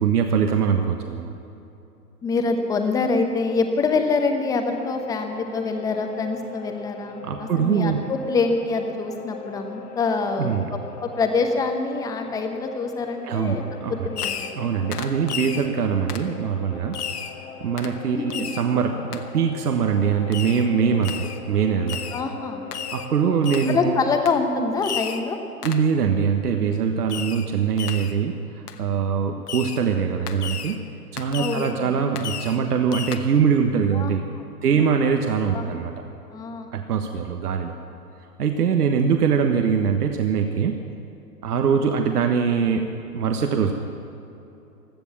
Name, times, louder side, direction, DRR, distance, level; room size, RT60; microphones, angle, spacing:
voice 1, 0.0-1.4 7.2-8.1 10.4-10.7 13.2-13.6 13.8-14.1 14.5-17.0 17.6-22.0 22.9-23.9 25.6-30.8 31.1-34.2 34.6-35.9 36.7-37.7 38.4-40.8 41.4-42.8 43.1-43.7, right 6 dB, 70° right, 5 dB, 1.3 m, -22 dB
voice 2, 2.2-10.5 11.0-14.5 18.1-18.4 22.1-22.6 23.7-25.4 31.4-31.9 33.9-34.1 34.7-34.8 35.5-35.7 36.3-36.7, left 4 dB, 5° left, 5 dB, 0.8 m, -25 dB
sound 1, 4.7-24.1, left 5 dB, 45° left, 1.4 m, -41 dB
Fireworks, 14.2-14.6 14.9-15.7 16.1-16.3 16.9-17.4 17.8-18.0 18.3-18.7 19.1-19.2 20.3-20.7 21.0-21.4 21.9-22.2 22.7-23.1 23.4-23.8 24.3-24.4 24.8-25.3 25.6-25.9 27.1-27.5 27.8-28.2 28.7-28.8 29.5-29.8 30.3-30.8 31.2-31.7 32.2-32.6 32.9-33.2, left 8 dB, 70° left, 1.3 m, -33 dB
16.5 x 12.0 x 7.3 m, 3.0 s
hypercardioid pair, 135°, 48 cm